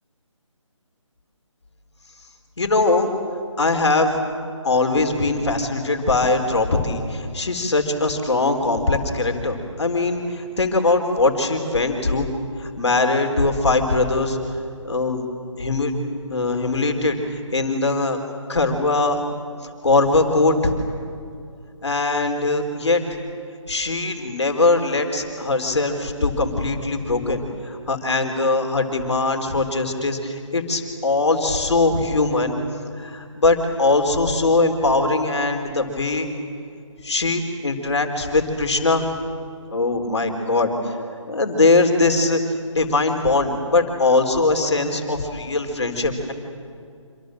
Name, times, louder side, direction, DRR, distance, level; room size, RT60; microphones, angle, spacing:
voice 1, 2.6-3.1 3.6-4.2 4.6-12.3 12.6-14.4 14.8-15.2 15.6-15.9 16.3-18.2 18.5-19.2 19.8-20.7 21.8-23.0 23.7-32.6 33.0-36.3 37.0-39.1 39.7-41.0 41.3-42.4 42.7-46.3, left 3 dB, 60° left, 4 dB, 3.9 m, -21 dB
27.0 x 26.5 x 7.7 m, 2.4 s
figure-of-eight pair, 155°, 17 cm